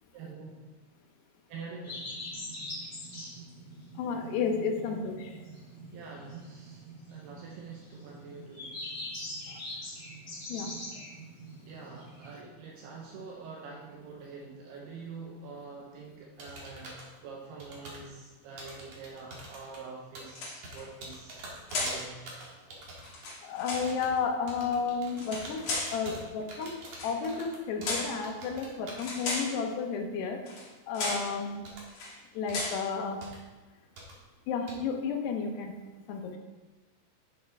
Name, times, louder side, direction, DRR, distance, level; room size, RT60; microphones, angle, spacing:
voice 1, 0.1-0.6 1.5-2.1 5.0-6.8 7.1-8.9 10.9-11.1 11.7-21.4 21.7-22.3 33.0-33.1 35.7-35.8, right 4 dB, 80° right, -1 dB, 2.8 m, -46 dB
sound 1, 1.8-12.4, left 1 dB, 30° left, 1.4 m, -43 dB
voice 2, 4.0-5.3 10.5-10.7 23.4-25.6 25.9-26.7 27.0-30.4 30.9-31.6 32.3-33.2 34.5-35.7 36.1-36.4, left 5 dB, 85° left, 3 dB, 3.1 m, -32 dB
sound 2, 16.4-17.1 17.6-18.1 18.5-19.8 20.1-20.3 20.6-23.3 23.6-24.2 24.5-28.0 28.2-29.1 31.6-31.8 32.5-32.6 33.2-33.4 34.0-34.1 34.7-34.8, right 1 dB, 50° right, 2.3 m, -45 dB
sound 3, 20.3-20.9 21.7-22.1 23.0-23.9 25.1-26.0 26.9-27.2 27.8-28.2 29.0-29.6 30.5-30.7 30.9-31.3 31.9-32.2 32.5-32.8, left 2 dB, 55° left, 3.3 m, -34 dB
11.0 x 6.5 x 3.5 m, 1.3 s
omnidirectional pair, 4.7 m